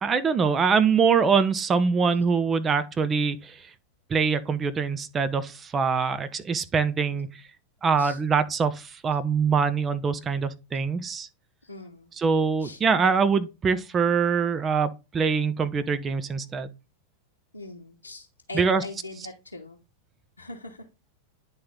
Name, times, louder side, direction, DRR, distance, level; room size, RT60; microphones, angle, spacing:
voice 1, 0.0-3.6 4.1-7.3 7.8-11.3 12.2-16.7 18.5-18.8, right 5 dB, 20° right, 0.6 m, -24 dB
voice 2, 7.0-7.3 8.0-8.2 11.6-12.1 12.6-12.8 17.5-19.8 20.4-20.8, left 2 dB, 80° left, 1.0 m, -41 dB
9.6 x 3.8 x 3.7 m
figure-of-eight pair, 90°, 0 cm